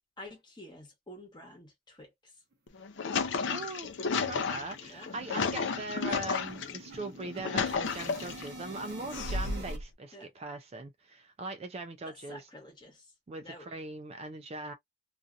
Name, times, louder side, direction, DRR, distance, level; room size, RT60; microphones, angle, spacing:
voice 1, 0.2-2.4 4.8-5.7 10.1-10.3 12.0-13.1 13.4-13.7, left 1 dB, 20° left, 1.0 m, -50 dB
sound 1, 2.5-2.6 2.9-3.0 3.4-3.6 3.8-9.8, right 1 dB, 50° right, 0.8 m, -47 dB
sound 2, 2.7-6.8 7.2-8.5 9.1-9.8, left 5 dB, 60° left, 0.5 m, -32 dB
voice 2, 3.5-12.4 13.3-14.7, right 2 dB, 30° right, 0.3 m, -40 dB
2.6 x 2.4 x 2.4 m
head